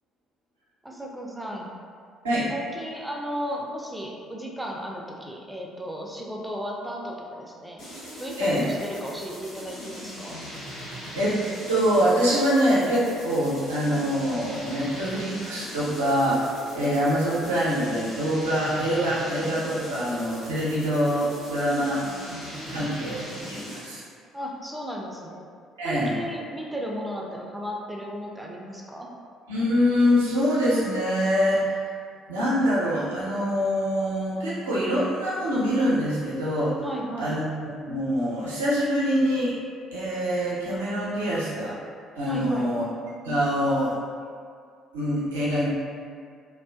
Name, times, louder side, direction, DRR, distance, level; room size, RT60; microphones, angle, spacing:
voice 1, 0.8-1.7 2.5-10.4 22.5-22.9 24.3-25.5 25.8-29.1 36.8-37.4 42.3-42.7, equal, 5° right, -2 dB, 0.4 m, -35 dB
sound 1, 7.8-24.0, equal, 75° left, 1.1 m, -40 dB
voice 2, 11.7-22.0 22.7-24.0 25.8-26.1 29.5-31.8 32.3-36.7 37.2-37.5 37.8-39.5 39.9-41.7 42.2-42.8 43.2-44.0 44.9-45.7, equal, 75° right, -9 dB, 0.6 m, -24 dB
2.4 x 2.3 x 2.2 m, 2.1 s
figure-of-eight pair, 50°, 0 cm